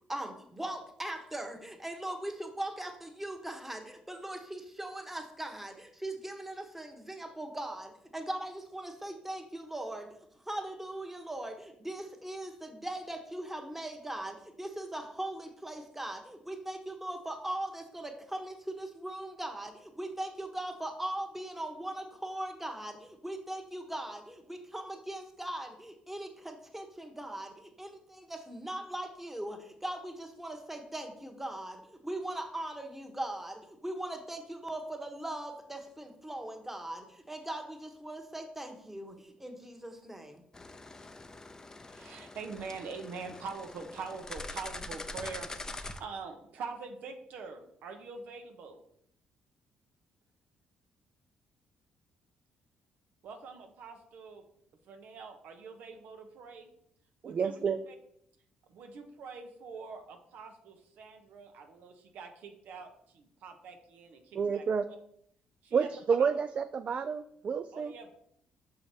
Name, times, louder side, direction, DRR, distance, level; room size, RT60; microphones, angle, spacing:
voice 1, 0.1-10.1 10.4-40.4, right 1 dB, 10° right, 4 dB, 1.2 m, -40 dB
sound 1, 40.5-46.0, left 2 dB, 20° left, 0.5 m, -44 dB
voice 2, 41.9-48.8 53.2-54.4 54.8-56.7 57.2-57.6 57.9-58.0 58.7-64.6 65.6-65.9 66.2-66.3 67.7-68.1, right 5 dB, 75° right, 5 dB, 0.9 m, -44 dB
voice 3, 57.2-57.8 64.4-64.8 65.7-67.9, right 6 dB, 45° right, 10 dB, 0.3 m, -29 dB
5.7 x 4.8 x 4.4 m, 0.70 s
cardioid pair, 75°, 3 cm